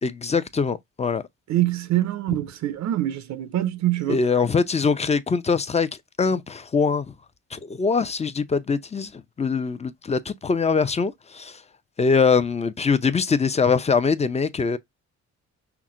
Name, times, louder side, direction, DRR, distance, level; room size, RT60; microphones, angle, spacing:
voice 1, 0.0-1.2 4.1-5.9 6.2-7.1 7.5-11.6 12.0-14.8, left 5 dB, 20° left, 0.6 m, -23 dB
voice 2, 1.5-4.2, right 14 dB, 65° right, 0.6 m, -24 dB
5.8 x 2.1 x 3.7 m
cardioid pair, 90°, 30 cm